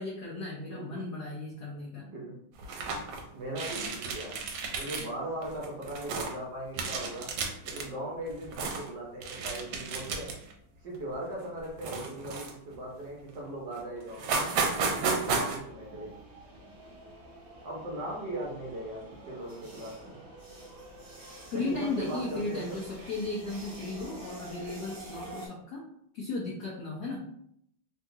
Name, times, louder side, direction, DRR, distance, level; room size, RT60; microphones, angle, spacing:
voice 1, 0.0-2.1 21.5-25.8 26.1-27.2, left 3 dB, 85° left, -3 dB, 0.9 m, -35 dB
voice 2, 0.7-1.0 2.0-2.3 3.3-4.4 4.8-7.3 7.6-10.4 10.8-14.3 14.8-16.1 17.6-20.2 21.5-22.8, right 1 dB, 65° right, -3 dB, 1.2 m, -39 dB
sound 1, 2.6-3.2 3.5-5.1 5.4-6.3 6.7-7.9 8.3-8.9 9.2-10.5 11.0-11.1 11.8-12.8 13.3-13.4 13.7-13.8 14.1-15.6, right 4 dB, 85° right, 1.5 m, -33 dB
sound 2, 14.6-25.5, right 2 dB, 45° right, 1.1 m, -48 dB
3.7 x 2.2 x 2.7 m, 0.72 s
omnidirectional pair, 2.4 m